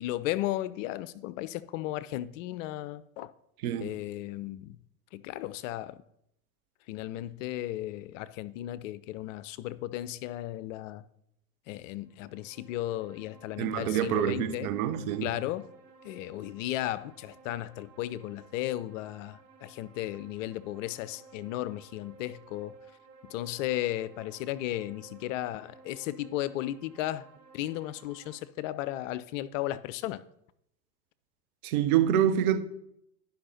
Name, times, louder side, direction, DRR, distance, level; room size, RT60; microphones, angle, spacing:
voice 1, 0.0-3.3 3.8-4.8 5.1-6.0 6.9-11.0 11.7-14.7 15.2-15.7 16.0-22.7 23.2-27.3 27.5-30.2, left 14 dB, 50° left, 0.6 m, -35 dB
voice 2, 3.6-3.9 13.6-15.3 31.6-32.6, right 10 dB, 60° right, 1.0 m, -26 dB
sound 1, 12.0-28.4, right 5 dB, 85° right, 1.7 m, -56 dB
11.5 x 5.6 x 4.3 m
hypercardioid pair, 90°, 49 cm